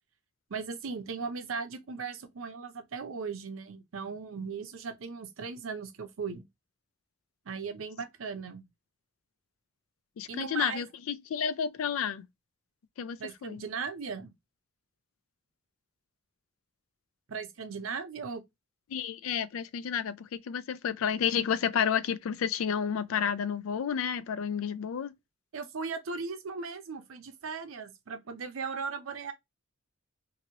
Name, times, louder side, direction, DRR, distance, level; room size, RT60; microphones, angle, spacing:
voice 1, 0.5-6.5 7.5-8.7 10.3-10.9 13.2-14.3 17.3-18.4 25.5-29.3, right 5 dB, 85° right, 0.6 m, -37 dB
voice 2, 10.2-12.3 13.0-13.6 18.9-25.1, left 8 dB, 85° left, 0.3 m, -31 dB
2.9 x 2.6 x 2.8 m
head